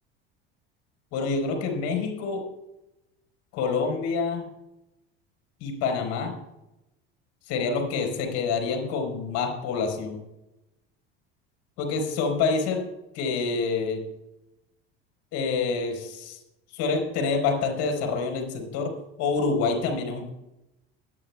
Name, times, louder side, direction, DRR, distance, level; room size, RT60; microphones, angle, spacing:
voice 1, 1.1-2.4 3.5-4.4 5.6-6.3 7.5-10.2 11.8-12.8 13.1-14.0 15.3-16.4 16.7-18.9 19.2-20.3, left 4 dB, 60° left, 3 dB, 4.5 m, -27 dB
23.5 x 10.0 x 2.4 m, 0.92 s
hypercardioid pair, 75°, 31 cm